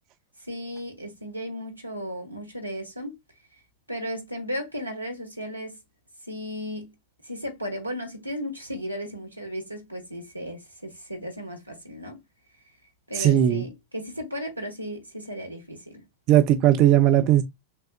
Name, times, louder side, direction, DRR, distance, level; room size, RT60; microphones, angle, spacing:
voice 1, 0.5-3.2 3.9-5.8 6.3-6.9 7.2-12.2 13.1-16.0, equal, 85° right, 1.1 m, -35 dB
voice 2, 13.2-13.6 16.3-17.4, right 12 dB, 40° right, 0.7 m, -18 dB
6.1 x 2.3 x 2.5 m
figure-of-eight pair, 90°, 0 cm